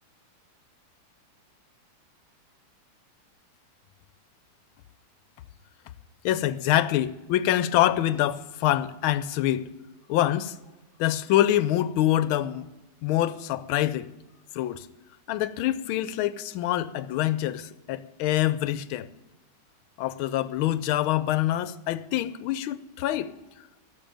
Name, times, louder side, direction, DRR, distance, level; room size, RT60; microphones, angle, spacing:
voice 1, 6.2-9.7 10.1-10.6 11.0-12.7 13.0-14.1 14.5-14.9 15.3-19.1 20.0-23.3, left 13 dB, 80° left, 1.4 m, -25 dB
12.5 x 7.3 x 8.9 m
omnidirectional pair, 2.3 m